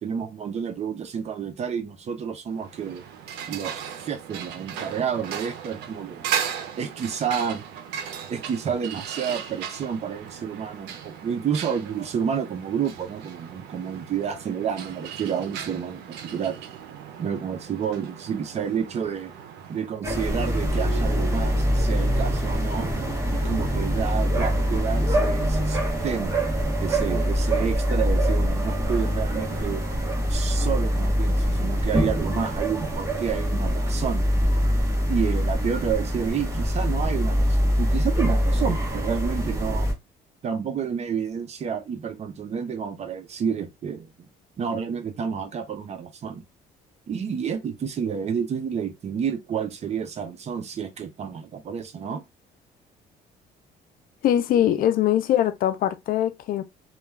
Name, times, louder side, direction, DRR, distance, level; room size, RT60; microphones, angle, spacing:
voice 1, 0.0-3.0 3.5-6.2 6.8-7.6 8.3-16.6 17.2-19.3 19.7-22.9 23.3-26.3 26.8-29.8 30.3-34.2 35.1-39.9 40.4-44.1 44.6-46.4 47.1-52.2, right 7 dB, 40° right, 0.5 m, -30 dB
sound 1, 2.6-20.0, right 8 dB, 85° right, 0.5 m, -37 dB
sound 2, 20.0-39.9, equal, 15° right, 0.9 m, -24 dB
voice 2, 54.2-56.6, left 11 dB, 55° left, 0.4 m, -22 dB
2.2 x 2.2 x 3.1 m
cardioid pair, 110°, 17 cm